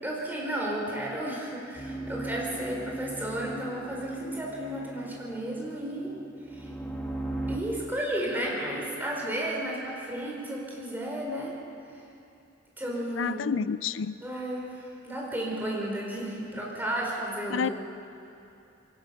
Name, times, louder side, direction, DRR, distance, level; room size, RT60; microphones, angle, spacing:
voice 1, 0.0-6.1 6.5-6.7 7.5-11.5 12.8-13.6 14.2-17.7, right 1 dB, 10° right, -3 dB, 4.7 m, -33 dB
sound 1, 1.8-7.6, right 2 dB, 10° left, 1.9 m, -38 dB
voice 2, 13.2-14.2 17.5-17.7, left 6 dB, 80° left, 15 dB, 0.4 m, -29 dB
22.5 x 18.5 x 7.0 m, 2.7 s
head